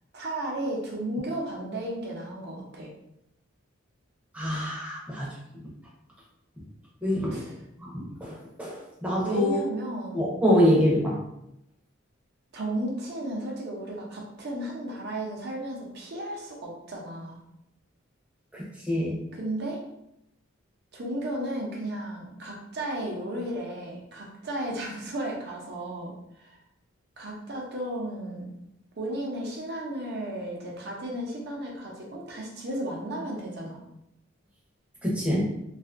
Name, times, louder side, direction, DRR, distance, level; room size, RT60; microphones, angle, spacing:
voice 1, 0.1-2.9 7.3-7.4 9.2-10.3 12.5-17.4 19.3-19.8 20.9-26.6 27.2-28.5 29.0-33.8, right 1 dB, 50° right, -1 dB, 0.6 m, -34 dB
voice 2, 4.3-5.4 7.0-7.4 7.8-9.6 10.1-11.2 18.5-19.2 35.0-35.4, equal, 5° right, -6 dB, 0.7 m, -25 dB
2.6 x 2.4 x 2.4 m, 0.83 s
head